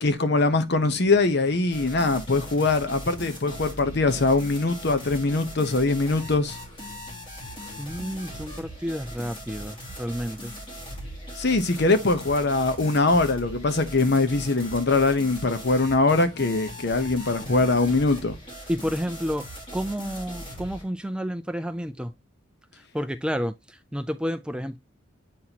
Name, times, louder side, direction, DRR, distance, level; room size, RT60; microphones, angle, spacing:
voice 1, 0.0-6.6 11.4-18.4, left 3 dB, 55° left, 0.9 m, -22 dB
sound 1, 1.7-20.8, equal, 25° left, 2.7 m, -40 dB
voice 2, 7.8-10.5 18.7-19.5 19.7-22.1 22.7-24.8, equal, 5° right, 0.3 m, -30 dB
8.4 x 4.2 x 2.9 m
head